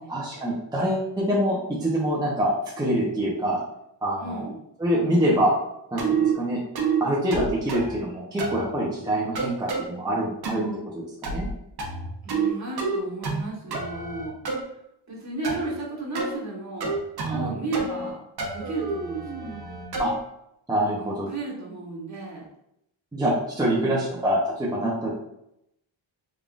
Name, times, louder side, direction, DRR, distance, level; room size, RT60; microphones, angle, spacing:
voice 1, 0.1-3.6 4.0-4.5 4.8-5.5 5.9-6.6 7.0-10.6 10.9-11.5 17.2-17.5 20.0-20.1 20.7-21.3 23.1-25.1, equal, 10° right, -6 dB, 0.6 m, -25 dB
voice 2, 4.2-4.6 12.2-14.3 15.1-16.9 17.3-18.2 18.5-19.7 20.9-22.5 23.8-24.3, right 2 dB, 35° right, -3 dB, 1.2 m, -34 dB
sound 1, 6.0-6.3 6.8-7.0 7.3-8.0 8.4-8.7 9.4-9.9 10.4-10.8 11.2-11.5 11.8-12.5 12.8-13.4 13.7-14.6 15.4-15.7 16.1-16.3 16.8-17.5 17.7-18.1 18.4-20.2, right 5 dB, 55° right, 0.9 m, -28 dB
3.7 x 3.5 x 2.4 m, 0.79 s
wide cardioid pair, 145°, 47 cm